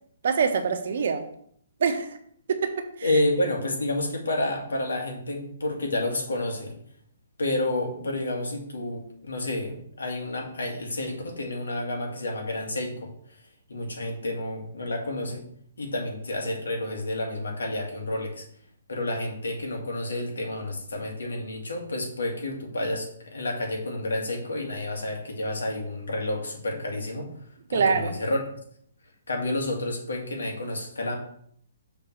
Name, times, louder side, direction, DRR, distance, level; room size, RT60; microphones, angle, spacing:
voice 1, 0.2-1.3 1.8-2.2 2.5-3.1 27.7-28.2, right 5 dB, 65° right, 6 dB, 1.2 m, -25 dB
voice 2, 3.0-6.8 7.4-13.4 13.7-15.4 15.8-18.4 18.9-27.3 27.7-28.4 29.3-31.2, left 1 dB, 90° left, 1 dB, 2.2 m, -30 dB
6.8 x 3.8 x 6.0 m, 0.66 s
hypercardioid pair, 150°, 0 cm